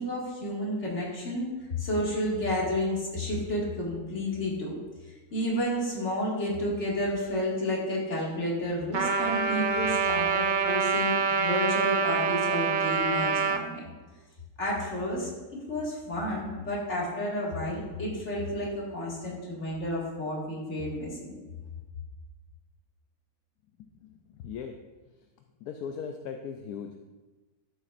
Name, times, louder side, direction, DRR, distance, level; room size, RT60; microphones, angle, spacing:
voice 1, 0.0-4.8 5.3-13.9 14.6-21.4, left 1 dB, 50° left, -4 dB, 2.5 m, -31 dB
Trumpet, 8.9-13.6, right 5 dB, 75° right, 0.4 m, -26 dB
voice 2, 23.8-24.2 24.4-24.8 25.6-27.1, left 6 dB, 80° left, 4 dB, 1.1 m, -38 dB
12.5 x 8.1 x 2.6 m, 1.2 s
omnidirectional pair, 1.6 m